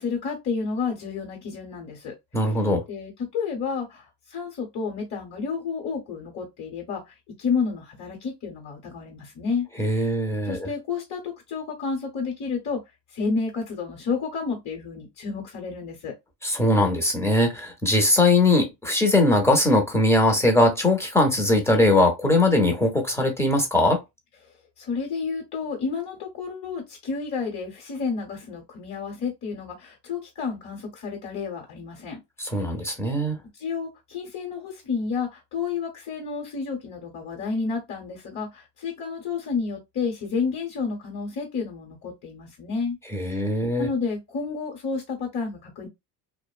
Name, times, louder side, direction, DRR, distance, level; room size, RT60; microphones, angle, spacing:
voice 1, 0.0-2.2 2.9-10.1 10.4-12.8 13.1-16.1 24.4-32.2 33.5-43.0 43.2-43.4 43.8-45.9, left 5 dB, 35° left, 1.0 m, -30 dB
voice 2, 2.3-2.8 9.8-10.7 16.4-24.0 32.4-33.4 43.1-43.9, left 1 dB, 5° left, 0.6 m, -21 dB
2.6 x 2.0 x 2.4 m
cardioid pair, 120°, 49 cm